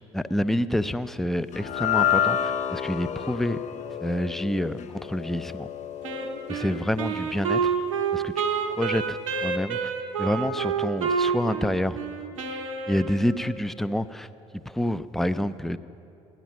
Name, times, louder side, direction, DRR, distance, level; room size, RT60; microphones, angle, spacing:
voice 1, 0.0-3.6 4.0-5.7 6.5-7.7 8.1-9.9 10.2-12.0 12.9-14.3 14.5-15.8, equal, ahead, 13 dB, 0.5 m, -28 dB
sound 1, 1.5-7.9, left 9 dB, 45° left, 0.7 m, -30 dB
Wind instrument woodwind instrument, 6.0-13.5, right 6 dB, 85° right, 1.0 m, -28 dB
17.5 x 11.0 x 5.9 m, 2.8 s
hypercardioid pair, 55°, 16 cm